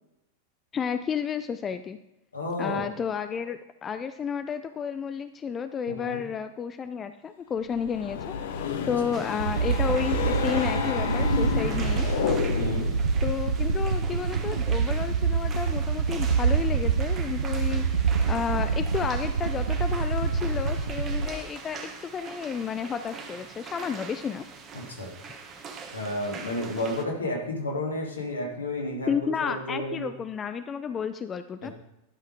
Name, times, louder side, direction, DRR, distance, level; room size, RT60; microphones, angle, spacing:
voice 1, 0.7-2.0 2.6-8.6 8.9-12.1 13.2-24.4 29.1-31.7, left 7 dB, 25° left, 10 dB, 0.4 m, -31 dB
voice 2, 2.3-2.8 5.9-6.2 8.8-8.9 12.5-12.9 24.7-25.1 25.9-30.1 31.6-31.7, left 1 dB, 75° left, -1 dB, 2.4 m, -32 dB
sound 1, 7.7-13.0, left 7 dB, 55° left, 0.9 m, -30 dB
sound 2, 9.1-27.0, right 5 dB, 30° right, 1.3 m, -42 dB
sound 3, 9.4-21.3, right 5 dB, 70° right, 0.7 m, -26 dB
11.5 x 5.6 x 4.9 m, 0.94 s
figure-of-eight pair, 90°, 0 cm